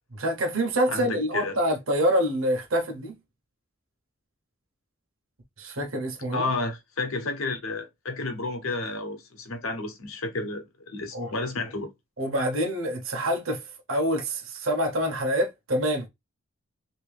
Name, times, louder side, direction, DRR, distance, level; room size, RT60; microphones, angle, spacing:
voice 1, 0.1-3.2 5.6-6.5 11.1-11.3 12.2-13.6 13.9-16.1, equal, 75° right, 1.0 m, -26 dB
voice 2, 0.9-1.6 6.3-11.9, left 3 dB, 80° left, 1.0 m, -31 dB
3.1 x 2.9 x 3.3 m
head